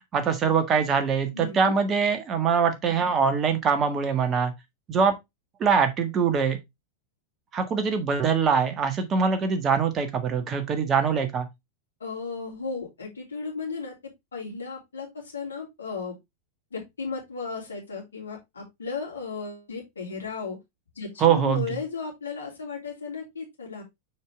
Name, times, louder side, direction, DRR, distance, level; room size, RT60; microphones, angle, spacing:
voice 1, 0.1-4.5 4.9-5.1 5.6-6.6 7.5-11.5 21.2-21.7, right 6 dB, 25° right, 1.5 m, -23 dB
voice 2, 1.3-1.7 12.0-16.2 16.7-20.6 20.9-23.8, left 4 dB, 70° left, 3.0 m, -35 dB
6.5 x 4.8 x 3.3 m
figure-of-eight pair, 90°, 0 cm